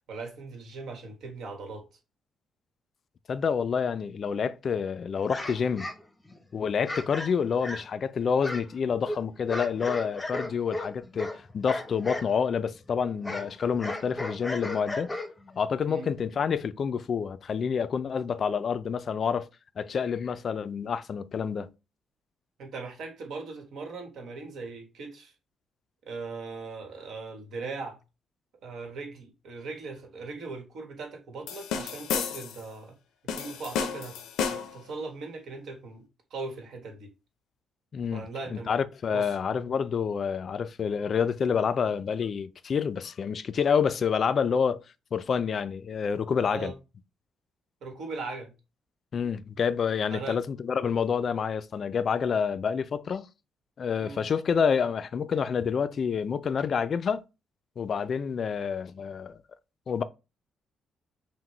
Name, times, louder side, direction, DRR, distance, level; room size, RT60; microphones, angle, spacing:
voice 1, 0.1-1.9 15.8-16.1 22.6-25.3 26.0-28.0 28.6-32.9 33.3-36.0 36.3-37.1 38.1-38.7 39.1-39.4 46.5-46.7 47.8-48.5 50.1-50.4 54.0-54.2, right 3 dB, 70° right, 1.4 m, -39 dB
voice 2, 3.3-5.9 6.5-15.1 15.6-19.5 19.8-21.7 37.9-38.3 38.5-44.8 45.1-46.7 49.1-53.3 53.8-57.2 57.8-59.4 59.9-60.0, left 6 dB, 50° left, 0.4 m, -28 dB
sound 1, 5.3-6.4 6.9-8.0 8.4-12.3 12.6-15.6, left 2 dB, 15° left, 0.7 m, -36 dB
sound 2, 31.5-32.6 33.3-34.8, left 7 dB, 90° left, 0.6 m, -32 dB
5.9 x 2.2 x 3.1 m
cardioid pair, 90°, 0 cm